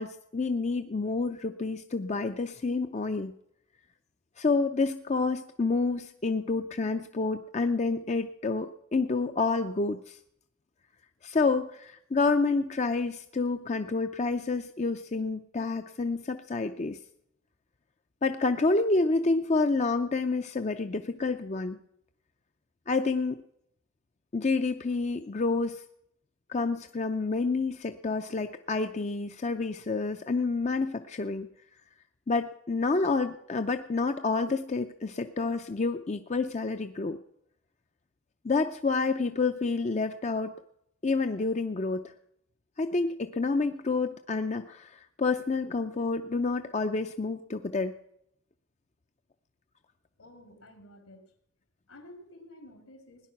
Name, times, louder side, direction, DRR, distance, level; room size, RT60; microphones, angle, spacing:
voice 1, 0.0-3.3 4.4-10.2 11.2-17.0 18.2-21.8 22.9-23.4 24.3-25.8 26.5-31.5 32.3-37.2 38.4-40.5 41.0-42.1 42.8-47.9, left 3 dB, 30° left, 8 dB, 0.5 m, -28 dB
voice 2, 50.2-51.3 51.9-53.3, left 1 dB, 75° left, 6 dB, 2.8 m, -51 dB
17.5 x 10.5 x 5.9 m, 0.73 s
head